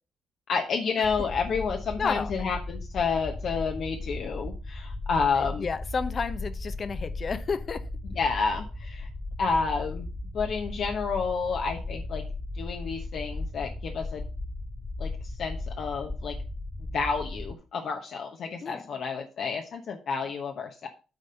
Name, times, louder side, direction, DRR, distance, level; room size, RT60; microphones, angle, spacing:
voice 1, 0.5-5.7 8.1-9.1 9.4-10.1 10.3-12.2 12.5-14.2 15.0-15.1 15.4-16.4 16.9-20.9, left 5 dB, 60° left, 1.1 m, -30 dB
sound 1, 1.0-17.5, left 2 dB, 15° left, 0.9 m, -36 dB
voice 2, 2.0-2.3 5.4-7.9 18.6-18.9, left 5 dB, 40° left, 0.8 m, -31 dB
8.9 x 4.1 x 5.5 m
cardioid pair, 90°, 0 cm